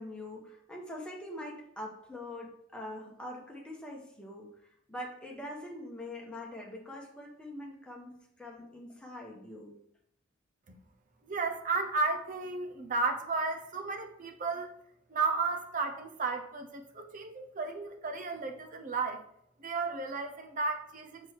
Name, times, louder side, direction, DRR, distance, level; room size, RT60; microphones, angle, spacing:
voice 1, 0.0-4.5 4.9-8.1 8.4-9.7, left 1 dB, 5° left, -2 dB, 1.4 m, -43 dB
voice 2, 11.2-14.7 15.1-19.2 19.6-21.3, right 4 dB, 40° right, 4 dB, 0.8 m, -33 dB
6.0 x 4.6 x 4.7 m, 0.72 s
head